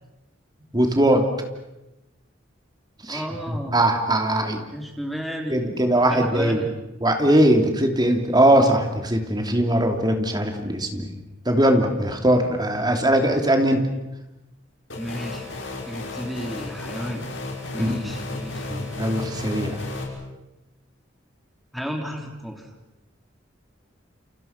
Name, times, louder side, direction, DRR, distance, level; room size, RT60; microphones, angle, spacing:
voice 1, 0.7-1.3 3.0-4.6 5.5-6.6 7.0-11.1 11.4-13.8 17.8-18.2 18.7-19.8, right 1 dB, 20° right, 4 dB, 3.1 m, -20 dB
voice 2, 3.1-3.8 4.7-5.6 6.1-6.7 15.0-15.5 15.9-17.3 17.7-18.7 21.7-22.7, equal, ahead, 2 dB, 3.6 m, -32 dB
sound 1, 14.9-20.0, left 2 dB, 70° left, 6.3 m, -33 dB
29.5 x 29.0 x 6.0 m, 0.99 s
head